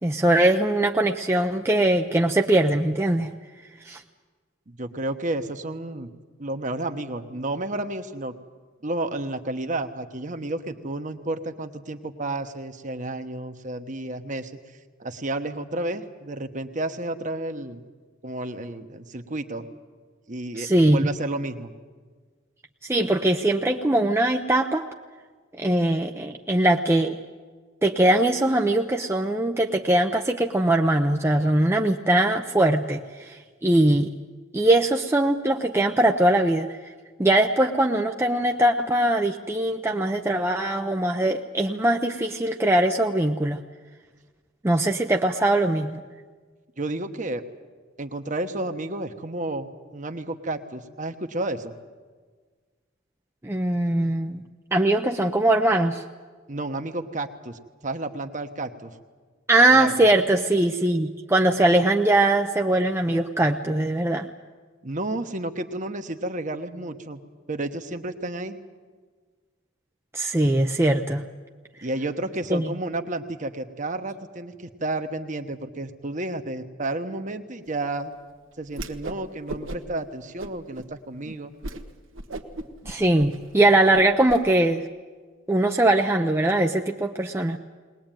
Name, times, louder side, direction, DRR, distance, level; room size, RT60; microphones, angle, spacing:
voice 1, 0.0-3.3 3.9-4.0 20.6-21.1 22.9-24.9 25.6-27.2 27.8-33.0 33.3-34.1 34.5-36.7 37.2-43.6 44.6-46.0 53.4-54.4 54.7-56.0 59.5-64.3 70.1-71.2 72.5-72.6 82.9-84.8 85.5-87.6, right 1 dB, 15° right, 2 dB, 0.6 m, -21 dB
voice 2, 4.7-6.1 6.4-8.3 8.8-14.5 15.0-17.8 18.2-19.7 20.3-21.7 46.8-47.4 48.0-51.7 56.5-58.9 59.7-60.1 64.8-67.2 67.5-68.6 71.8-78.1 78.6-81.5, right 2 dB, 40° right, 7 dB, 1.2 m, -31 dB
Whoosh swoosh swish, 78.7-79.2 79.5-80.0 80.4-80.9 81.2-81.3 81.6-81.8 82.1-84.4, right 1 dB, 90° right, 1.3 m, -36 dB
20.5 x 19.5 x 9.1 m, 1.5 s
head